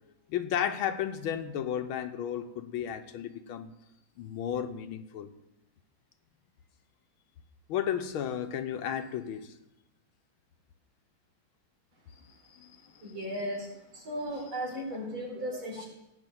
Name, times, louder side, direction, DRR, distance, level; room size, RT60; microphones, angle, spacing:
voice 1, 0.3-3.7 4.2-5.3 7.7-9.5 12.5-12.8 13.0-13.1 14.8-14.9, left 9 dB, 85° left, 1.7 m, -33 dB
voice 2, 13.0-13.7 13.9-15.9, equal, 75° right, 5.4 m, -36 dB
17.0 x 5.8 x 7.9 m
omnidirectional pair, 2.2 m